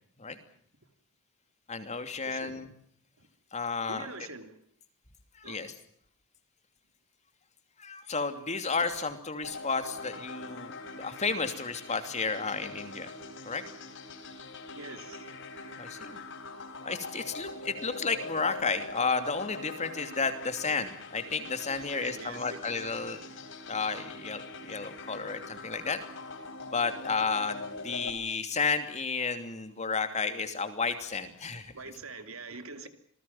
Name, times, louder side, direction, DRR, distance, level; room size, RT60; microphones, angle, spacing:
voice 1, 1.7-2.7 3.5-4.1 5.4-5.7 7.8-13.1 13.4-13.6 15.8-16.2 16.8-23.2 23.7-26.0 26.7-31.7, left 4 dB, 30° left, 8 dB, 2.9 m, -32 dB
voice 2, 2.2-2.6 3.2-3.3 3.9-4.6 5.4-5.7 14.8-15.3 21.9-22.7 31.7-32.9, right 3 dB, 65° right, 8 dB, 2.9 m, -44 dB
sound 1, 9.4-28.1, left 3 dB, 60° left, 4.0 m, -43 dB
27.5 x 20.0 x 7.3 m, 0.64 s
head